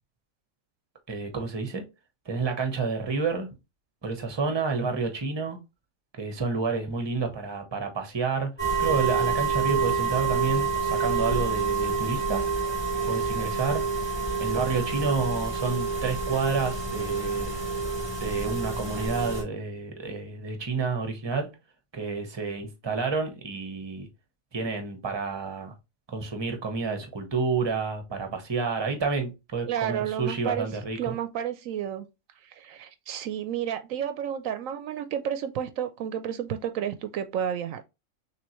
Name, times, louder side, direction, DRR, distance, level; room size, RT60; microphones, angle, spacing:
voice 1, 1.1-1.8 2.3-3.5 4.0-5.6 6.2-8.5 8.8-12.4 13.1-13.8 14.4-17.6 18.2-21.5 21.9-24.1 24.5-25.7 26.1-31.1, right 4 dB, 20° right, 0.9 m, -29 dB
sound 1, 8.6-19.4, right 5 dB, 25° left, 2.6 m, -28 dB
voice 2, 29.7-30.7 31.0-32.1 32.4-37.8, right 9 dB, 75° right, 0.9 m, -31 dB
6.3 x 2.8 x 3.0 m
omnidirectional pair, 1.4 m